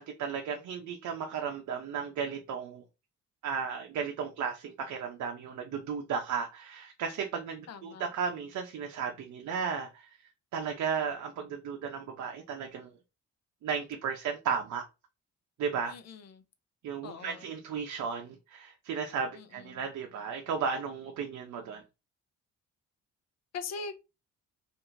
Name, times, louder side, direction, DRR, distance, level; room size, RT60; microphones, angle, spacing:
voice 1, 0.0-2.8 3.4-10.1 10.5-12.9 13.6-14.8 15.6-15.9 16.8-21.8, right 6 dB, 70° right, 0.7 m, -34 dB
voice 2, 7.7-8.1 15.9-16.4 17.0-17.5 19.3-19.9 23.5-24.0, left 5 dB, 60° left, 0.7 m, -42 dB
3.0 x 2.6 x 3.8 m
cardioid pair, 90°, 30 cm